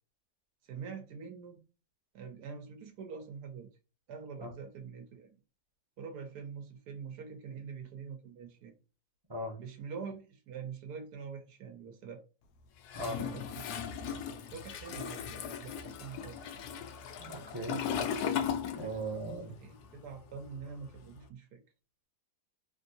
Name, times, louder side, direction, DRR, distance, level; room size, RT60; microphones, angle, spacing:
voice 1, 0.6-1.6 2.1-3.7 4.1-5.4 6.0-8.7 9.6-12.2 13.0-13.7 14.0-14.2 14.5-16.4 19.5-21.6, right 6 dB, 85° right, 1.2 m, -45 dB
Toilet flush, 12.9-19.3 19.6-21.2, left 8 dB, 90° left, 1.1 m, -37 dB
voice 2, 17.2-17.8 18.8-19.5, right 1 dB, 25° right, 0.6 m, -38 dB
3.3 x 2.6 x 2.6 m
omnidirectional pair, 1.6 m